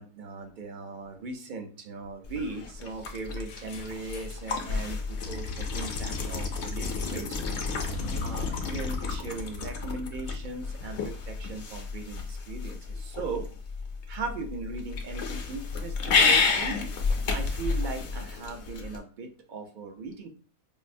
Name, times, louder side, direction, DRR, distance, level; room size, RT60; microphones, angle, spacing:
voice 1, 0.0-7.5 8.2-13.5 14.1-16.8 17.3-20.3, right 3 dB, 55° right, 5 dB, 0.5 m, -38 dB
sound 1, 2.2-19.0, left 4 dB, 60° left, 0.8 m, -31 dB
sound 2, 3.5-4.5 6.1-6.6 6.8-7.1 7.9-10.3, left 4 dB, 90° left, 1.0 m, -40 dB
5.3 x 2.0 x 2.5 m, 0.39 s
omnidirectional pair, 1.4 m